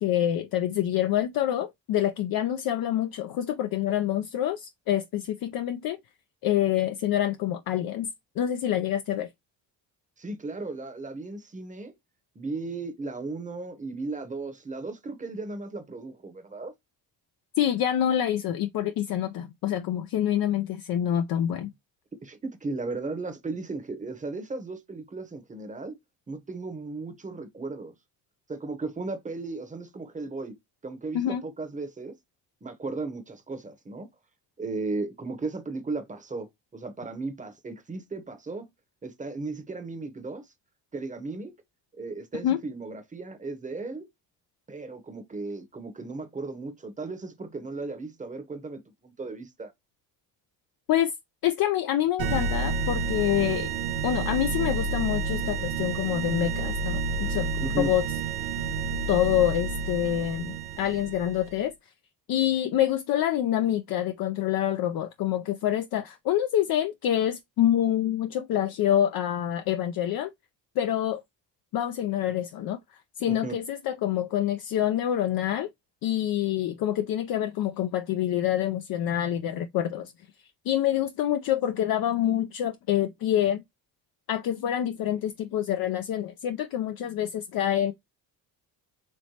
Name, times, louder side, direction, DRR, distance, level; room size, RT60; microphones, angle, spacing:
voice 1, 0.0-6.0 6.4-8.1 8.4-9.3 17.6-21.7 31.1-31.4 42.4-42.6 50.9-51.1 51.4-53.7 54.0-57.5 57.8-58.1 59.1-61.7 62.3-70.3 70.8-71.2 71.7-72.8 73.2-75.7 76.0-80.1 80.7-83.6 84.3-87.9, left 11 dB, 55° left, 0.5 m, -26 dB
voice 2, 10.2-11.9 12.3-16.7 22.2-26.0 26.3-27.9 28.5-30.5 30.8-32.2 32.6-34.1 34.6-38.7 39.0-40.5 40.9-41.5 42.0-44.1 44.7-49.7 57.6-57.9 73.3-73.5, right 3 dB, 15° right, 0.9 m, -36 dB
sound 1, 52.2-61.6, right 4 dB, 85° right, 0.8 m, -30 dB
3.2 x 3.0 x 2.8 m
cardioid pair, 85°, 43 cm